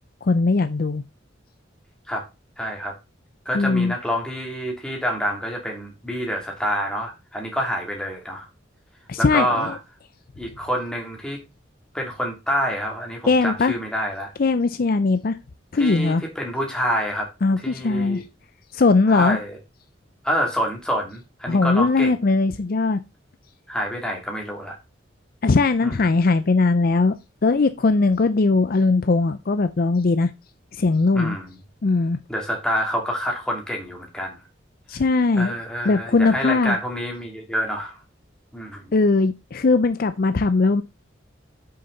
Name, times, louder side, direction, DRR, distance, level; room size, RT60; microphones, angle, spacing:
voice 1, 0.2-1.0 3.5-3.9 9.1-9.7 13.3-13.7 14.4-15.4 15.7-16.2 17.4-18.2 18.7-19.4 21.5-23.0 25.4-27.1 27.4-30.3 30.8-31.4 31.8-32.2 34.9-35.5 35.9-36.8 38.9-40.8, left 3 dB, 50° left, 0.5 m, -19 dB
voice 2, 2.6-2.9 3.4-8.5 9.2-9.8 10.4-11.4 11.9-14.3 15.8-17.3 17.6-18.2 19.1-19.6 20.2-22.2 23.7-24.7 25.8-26.0 31.1-31.6 32.3-34.4 35.4-38.0 38.5-38.9, equal, 5° left, 2.6 m, -27 dB
8.2 x 6.6 x 3.9 m
head